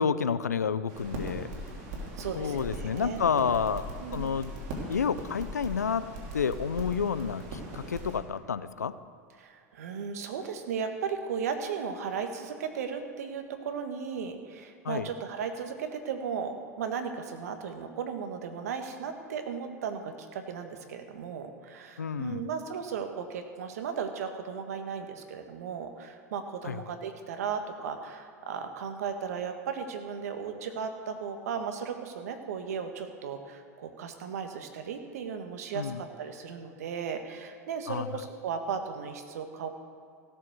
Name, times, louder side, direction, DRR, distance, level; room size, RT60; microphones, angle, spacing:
voice 1, 0.0-1.5 2.4-3.9 4.1-4.5 4.9-8.9 14.8-15.1 22.0-22.5 26.6-26.8 35.7-36.0 37.9-38.1, left 6 dB, 90° left, 14 dB, 0.5 m, -30 dB
sound 1, 0.9-8.2, right 1 dB, 55° right, 3.6 m, -40 dB
voice 2, 2.2-3.2 4.0-4.4 9.4-39.7, right 6 dB, 70° right, 6 dB, 1.5 m, -36 dB
16.0 x 7.1 x 6.9 m, 2.3 s
hypercardioid pair, 90°, 9 cm